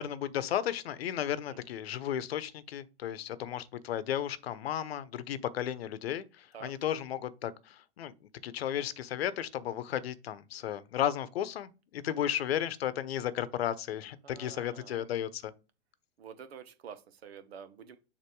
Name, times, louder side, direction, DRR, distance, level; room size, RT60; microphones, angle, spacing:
voice 1, 0.0-8.1 8.4-15.5, left 10 dB, 65° left, 0.9 m, -34 dB
voice 2, 14.2-15.1 16.2-18.0, right 7 dB, 70° right, 1.3 m, -48 dB
6.9 x 2.9 x 4.7 m
hypercardioid pair, 105°, 32 cm